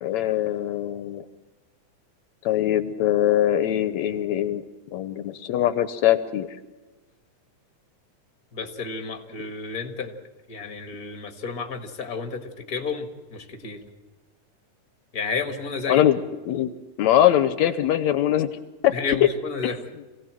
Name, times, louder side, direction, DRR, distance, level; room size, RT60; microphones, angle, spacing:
voice 1, 0.0-1.3 2.5-4.6 4.9-6.5 15.9-16.2 16.5-16.7 17.0-19.3, left 12 dB, 75° left, 12 dB, 2.1 m, -22 dB
voice 2, 8.5-10.2 10.5-13.8 15.1-16.0 18.9-19.8, left 4 dB, 35° left, 6 dB, 1.8 m, -31 dB
26.5 x 17.5 x 7.6 m, 1.3 s
omnidirectional pair, 3.4 m